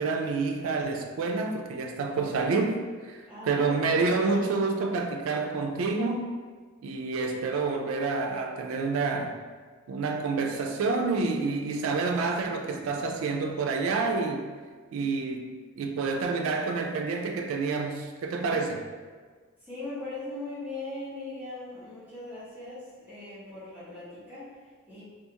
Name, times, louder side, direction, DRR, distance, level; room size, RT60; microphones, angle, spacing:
voice 1, 0.0-6.3 6.8-9.4 9.9-14.5 14.9-18.8, right 4 dB, 70° right, 4 dB, 0.3 m, -28 dB
voice 2, 3.3-4.0 19.6-25.0, left 2 dB, 10° right, -11 dB, 0.7 m, -40 dB
2.4 x 2.4 x 2.8 m, 1.5 s
head